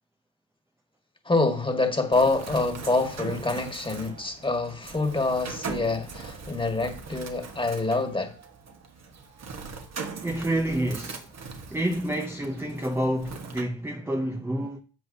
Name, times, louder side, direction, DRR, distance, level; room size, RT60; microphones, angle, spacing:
voice 1, 1.3-8.3, left 3 dB, 10° left, 1.7 m, -26 dB
Bird, 2.1-13.6, right 5 dB, 35° right, 1.3 m, -40 dB
voice 2, 10.2-11.3 11.7-14.8, right 1 dB, 5° right, 0.7 m, -28 dB
11.5 x 7.7 x 2.8 m
cardioid pair, 95°, 45 cm